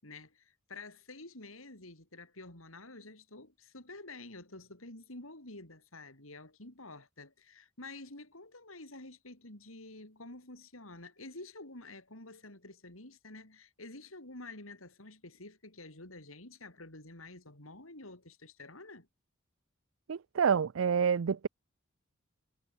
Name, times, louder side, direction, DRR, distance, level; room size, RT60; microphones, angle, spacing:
voice 1, 0.0-19.1, left 2 dB, 85° left, 6.3 m, -49 dB
voice 2, 20.1-21.5, right 6 dB, 75° right, 0.5 m, -28 dB
head